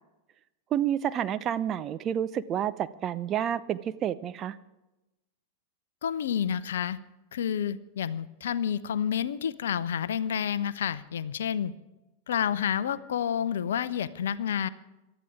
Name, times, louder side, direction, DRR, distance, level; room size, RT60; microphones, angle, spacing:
voice 1, 0.7-4.6, right 10 dB, 30° right, 13 dB, 0.7 m, -29 dB
voice 2, 6.0-7.0 7.3-11.7 12.3-14.7, left 8 dB, 60° left, 16 dB, 0.7 m, -29 dB
27.0 x 13.0 x 3.6 m, 0.98 s
figure-of-eight pair, 90°, 0 cm